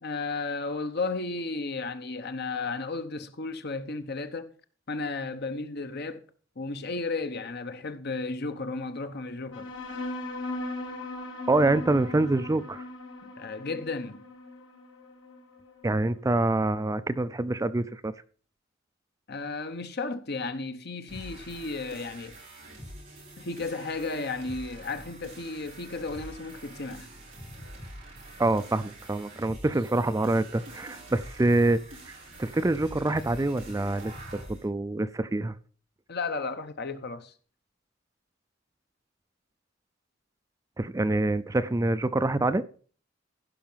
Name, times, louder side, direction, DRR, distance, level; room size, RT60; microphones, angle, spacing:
voice 1, 0.0-4.5 4.9-6.2 6.6-9.7 13.2-14.2 19.3-22.4 23.4-27.1 36.1-37.3, left 3 dB, 55° left, 1.0 m, -34 dB
sound 1, 9.5-16.5, left 2 dB, 80° left, 2.0 m, -39 dB
voice 2, 11.5-12.8 15.8-18.1 28.4-34.1 34.5-35.6 40.8-42.6, right 2 dB, 15° right, 0.4 m, -26 dB
sound 2, 21.1-34.6, right 1 dB, 40° right, 7.2 m, -45 dB
15.0 x 5.8 x 5.6 m
head